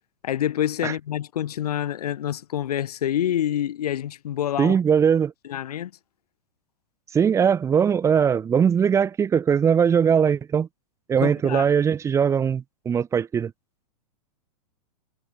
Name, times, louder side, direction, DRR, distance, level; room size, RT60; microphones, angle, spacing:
voice 1, 0.2-4.8 5.5-5.9 11.2-11.7, left 11 dB, 80° left, 1.4 m, -27 dB
voice 2, 4.6-5.3 7.1-10.7 11.1-13.5, right 7 dB, 15° right, 0.5 m, -20 dB
hypercardioid pair, 120°, 19 cm